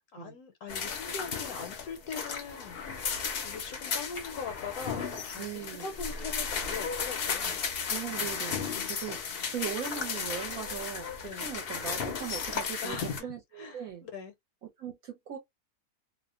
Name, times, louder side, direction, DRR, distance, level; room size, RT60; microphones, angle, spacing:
voice 1, 0.0-7.6 11.2-11.4 12.8-13.3 13.6-14.3, left 5 dB, 75° left, 1.1 m, -41 dB
sound 1, 0.7-13.2, left 6 dB, 60° left, 0.6 m, -35 dB
voice 2, 5.4-5.9 7.9-13.0 13.2-14.1 14.6-15.4, right 9 dB, 65° right, 1.1 m, -39 dB
2.7 x 2.1 x 2.4 m
omnidirectional pair, 1.7 m